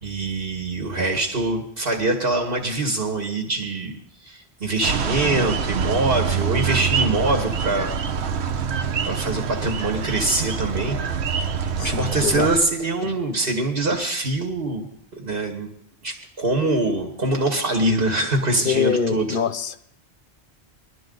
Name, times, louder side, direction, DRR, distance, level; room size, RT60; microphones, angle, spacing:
voice 1, 0.0-7.9 9.0-11.0 11.3-11.5 11.8-14.9 15.2-15.7 16.0-19.4, right 2 dB, 60° right, 4 dB, 1.8 m, -24 dB
sound 1, 4.8-12.6, right 6 dB, 75° right, 1.1 m, -25 dB
voice 2, 11.8-12.5 18.6-19.8, left 7 dB, 60° left, 13 dB, 0.8 m, -24 dB
20.5 x 13.0 x 3.9 m, 0.71 s
omnidirectional pair, 1.1 m